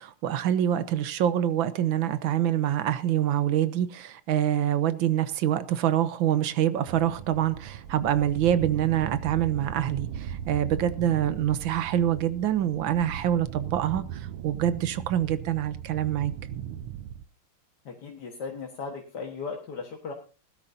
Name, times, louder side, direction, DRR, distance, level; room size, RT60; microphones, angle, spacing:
voice 1, 0.0-16.3, right 11 dB, 70° right, 14 dB, 1.5 m, -26 dB
sound 1, 6.9-17.2, right 9 dB, 90° right, 1.7 m, -38 dB
voice 2, 17.9-20.1, left 5 dB, 55° left, 1 dB, 2.0 m, -37 dB
20.0 x 12.5 x 2.7 m, 0.34 s
omnidirectional pair, 2.4 m